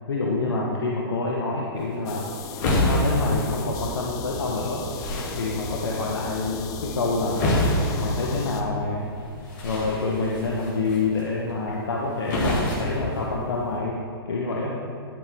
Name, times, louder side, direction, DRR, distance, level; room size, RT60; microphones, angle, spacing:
voice 1, 0.1-2.3 2.9-4.9 5.3-7.4 8.0-9.1 9.6-14.0 14.3-14.8, left 3 dB, 70° left, -2 dB, 1.0 m, -27 dB
sound 1, 1.7-13.8, left 1 dB, 50° left, 2.1 m, -29 dB
sound 2, 2.1-8.6, left 6 dB, 25° left, 0.7 m, -37 dB
11.5 x 7.5 x 3.4 m, 2.5 s
figure-of-eight pair, 115°, 13 cm